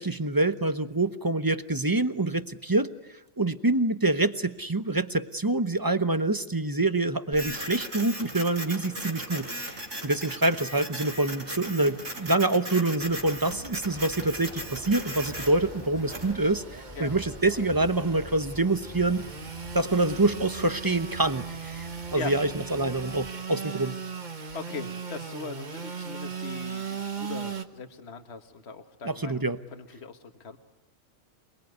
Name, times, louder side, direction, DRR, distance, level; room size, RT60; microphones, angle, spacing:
voice 1, 0.0-2.9 3.4-16.6 17.0-19.3 19.7-23.9 29.0-29.6, right 2 dB, 20° right, 12 dB, 0.8 m, -26 dB
Printer, 7.3-16.3, right 1 dB, 70° right, 4.8 m, -38 dB
sound 1, 13.0-23.3, equal, 20° left, 1.7 m, -47 dB
Engine / Sawing, 13.9-27.6, right 6 dB, 35° right, 1.4 m, -39 dB
voice 2, 24.5-29.4 29.7-30.6, left 5 dB, 55° left, 7 dB, 1.8 m, -40 dB
28.0 x 21.0 x 9.4 m, 0.99 s
omnidirectional pair, 1.4 m